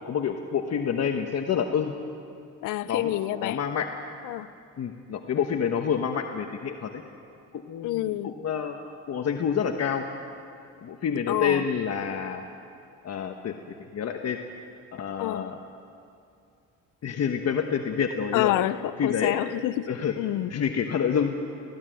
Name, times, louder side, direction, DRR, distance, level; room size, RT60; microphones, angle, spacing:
voice 1, 0.0-1.9 2.9-3.1 3.4-3.9 4.8-7.0 7.5-8.8 9.1-10.0 10.8-12.4 13.0-13.6 13.9-14.4 14.9-15.6 17.0-18.5 19.0-19.4 19.9-20.1 20.5-21.4, left 7 dB, 55° left, 1.3 m, -27 dB
voice 2, 2.6-3.6 4.2-4.5 7.8-8.3 11.3-11.7 15.2-15.5 18.3-19.9 20.1-20.5, left 15 dB, 90° left, 0.7 m, -28 dB
19.0 x 16.0 x 9.3 m
cardioid pair, 90°, 30 cm